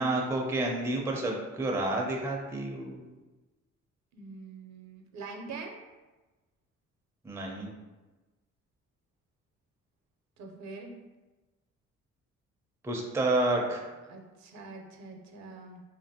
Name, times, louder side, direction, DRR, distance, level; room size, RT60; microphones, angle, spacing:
voice 1, 0.0-3.1 7.2-7.7 12.8-13.9, right 2 dB, 10° right, 0 dB, 0.4 m, -30 dB
voice 2, 4.1-5.8 10.4-10.9 14.1-15.8, right 3 dB, 65° right, 2 dB, 0.6 m, -44 dB
2.8 x 2.5 x 2.7 m, 1.2 s
cardioid pair, 90°, 30 cm